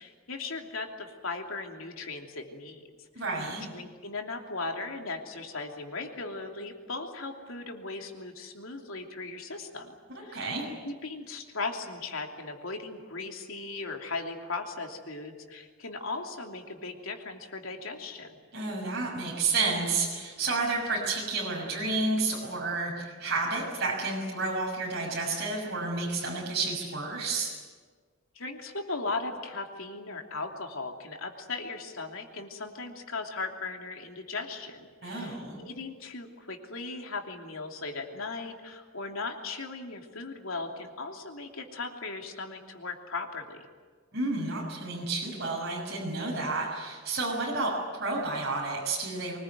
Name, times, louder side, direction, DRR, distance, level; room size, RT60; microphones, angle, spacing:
voice 1, 0.0-2.8 3.7-10.4 10.8-18.4 28.3-43.7, left 3 dB, 90° left, 3 dB, 3.0 m, -38 dB
voice 2, 3.1-3.7 10.3-10.7 18.5-27.5 35.0-35.6 44.1-49.4, right 3 dB, 55° right, -4 dB, 6.3 m, -31 dB
24.5 x 20.5 x 9.4 m, 1.5 s
head